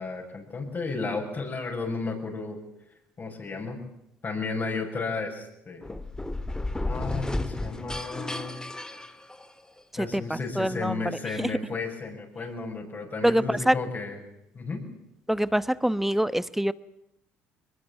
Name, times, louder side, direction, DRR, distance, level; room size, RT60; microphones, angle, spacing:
voice 1, 0.0-2.6 3.2-3.8 4.2-5.9 6.8-8.6 10.0-14.2 14.5-14.8, left 4 dB, 40° left, -2 dB, 7.3 m, -33 dB
sound 1, 5.8-9.8, left 2 dB, 10° left, 2.3 m, -33 dB
voice 2, 10.0-11.5 13.2-13.8 15.3-16.7, equal, 5° right, 17 dB, 1.0 m, -25 dB
22.5 x 21.0 x 9.0 m, 0.81 s
supercardioid pair, 65°, 6 cm